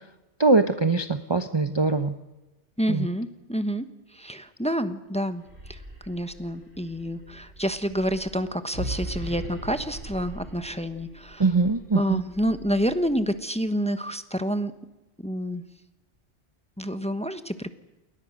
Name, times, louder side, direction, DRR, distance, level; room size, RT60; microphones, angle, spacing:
voice 1, 0.4-2.1 2.9-3.1 11.4-12.2, right 3 dB, 25° right, 8 dB, 0.8 m, -22 dB
voice 2, 2.8-11.4 11.9-14.7 15.2-15.6 16.8-17.7, equal, 5° left, 10 dB, 1.1 m, -28 dB
sound 1, 5.3-13.4, right 1 dB, 60° right, 5.6 m, -40 dB
29.5 x 20.5 x 6.4 m, 1.1 s
omnidirectional pair, 1.2 m